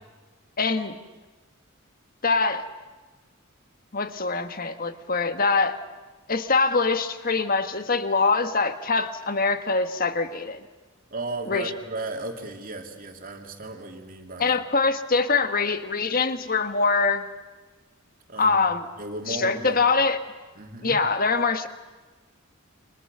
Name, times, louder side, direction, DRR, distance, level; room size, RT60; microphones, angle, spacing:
voice 1, 0.6-1.0 2.2-2.7 3.9-5.8 6.3-10.6 11.5-11.7 14.4-17.3 18.4-18.8 19.3-20.2 20.8-21.7, left 4 dB, 45° left, 9 dB, 1.4 m, -23 dB
voice 2, 11.1-14.6 18.3-18.6 19.0-19.8 20.5-21.0, right 2 dB, 40° right, 3 dB, 2.8 m, -35 dB
29.5 x 25.0 x 6.8 m, 1.3 s
head